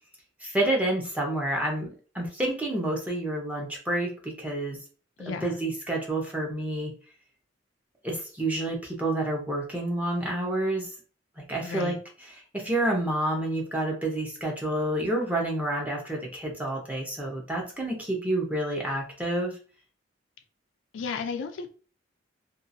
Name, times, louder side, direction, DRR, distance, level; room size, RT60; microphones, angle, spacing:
voice 1, 0.4-1.9 2.1-4.8 5.3-6.9 8.0-10.9 11.4-12.0 12.5-19.6, right 1 dB, 10° right, 0.7 m, -29 dB
voice 2, 5.2-5.6 11.6-12.0 20.9-21.7, left 5 dB, 70° left, 0.4 m, -34 dB
2.7 x 2.4 x 2.6 m
head